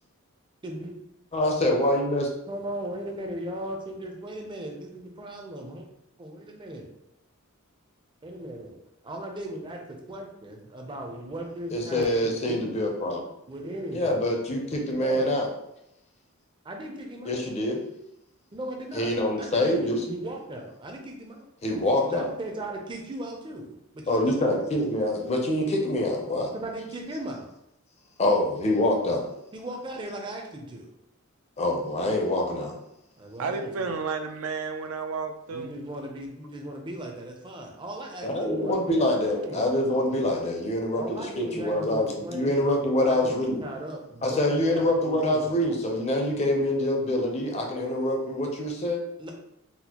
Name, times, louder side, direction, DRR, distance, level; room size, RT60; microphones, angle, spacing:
voice 1, 0.6-0.9 2.5-5.9 6.2-6.9 8.2-8.8 9.0-12.9 13.5-14.1 14.9-15.3 16.6-17.4 18.5-21.5 22.0-24.6 26.5-27.5 29.5-30.9 33.2-33.9 35.5-39.7 40.9-45.6 49.2-49.3, right 1 dB, 20° right, 2 dB, 0.4 m, -37 dB
voice 2, 1.3-2.3 11.7-13.2 13.9-15.5 17.2-17.8 18.9-20.0 21.6-22.2 24.1-26.5 28.2-29.2 31.6-32.8 38.2-43.6 44.2-49.0, left 1 dB, 30° left, 1 dB, 0.5 m, -25 dB
voice 3, 33.4-35.7, right 4 dB, 80° right, 6 dB, 0.4 m, -31 dB
4.1 x 2.1 x 2.8 m, 0.83 s
head